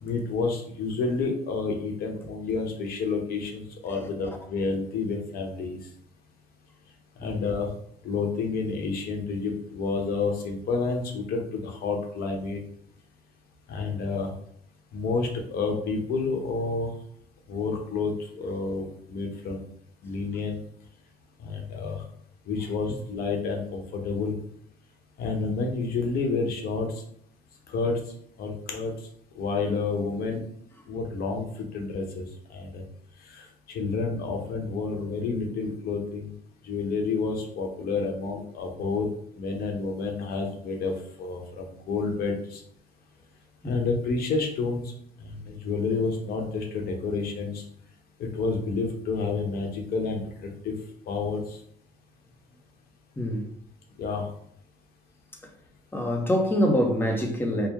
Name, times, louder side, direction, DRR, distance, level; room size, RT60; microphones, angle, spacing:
voice 1, 0.0-5.8 7.2-7.7 8.0-12.6 13.7-14.3 14.9-16.9 17.5-19.6 20.0-20.6 21.4-22.0 22.5-24.4 25.2-27.0 27.7-28.0 28.4-28.9 29.3-30.4 30.9-32.8 33.3-36.3 36.6-39.1 39.4-40.9 41.2-42.6 43.6-44.8 45.2-47.6 48.2-50.8 51.1-51.6 54.0-54.3, left 4 dB, 65° left, 2 dB, 1.0 m, -29 dB
voice 2, 53.2-53.5 55.9-57.7, equal, 15° left, 2 dB, 0.8 m, -25 dB
4.6 x 2.1 x 3.5 m, 0.66 s
cardioid pair, 110°, 17 cm